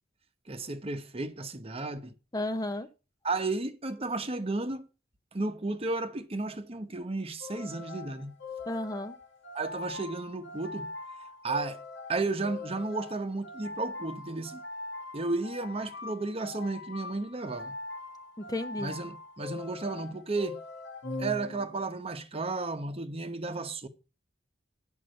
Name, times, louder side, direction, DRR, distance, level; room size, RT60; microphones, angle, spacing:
voice 1, 0.5-2.1 3.2-4.9 5.3-8.3 9.5-10.9 11.4-11.8 12.1-14.6 15.1-17.7 18.8-20.6 21.2-23.9, right 3 dB, 30° right, 0.9 m, -33 dB
voice 2, 2.3-2.9 8.7-9.2 18.5-18.9, left 1 dB, 20° left, 0.6 m, -33 dB
sound 1, 7.4-21.9, left 3 dB, 75° left, 1.8 m, -42 dB
9.3 x 5.5 x 6.4 m
head